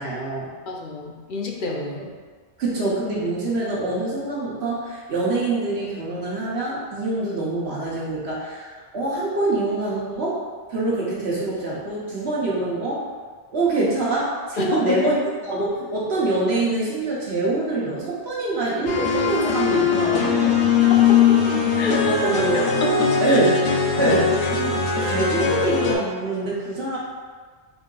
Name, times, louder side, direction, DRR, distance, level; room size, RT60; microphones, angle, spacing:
voice 1, 0.0-0.5 2.0-2.1 2.6-8.7 8.9-10.4 10.7-13.1 13.5-15.2 15.4-20.5 22.2-22.6 23.2-23.5 24.0-24.7 25.0-27.0, right 2 dB, 65° right, -6 dB, 1.1 m, -25 dB
voice 2, 0.7-2.2 14.6-15.0 20.9-21.4 21.8-23.4 23.9-24.2, left 2 dB, 60° left, 0 dB, 0.6 m, -28 dB
sound 1, 18.9-26.0, left 6 dB, 80° left, 0.9 m, -20 dB
3.8 x 2.7 x 3.8 m, 1.5 s
omnidirectional pair, 1.2 m